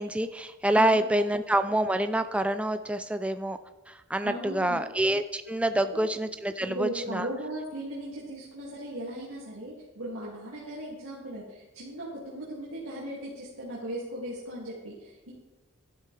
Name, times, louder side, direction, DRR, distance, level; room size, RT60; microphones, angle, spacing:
voice 1, 0.0-3.6 3.9-7.3, right 1 dB, 5° right, 9 dB, 0.3 m, -27 dB
voice 2, 4.2-4.8 6.7-15.3, right 1 dB, 75° right, -6 dB, 2.3 m, -37 dB
12.0 x 12.0 x 3.3 m, 1.2 s
head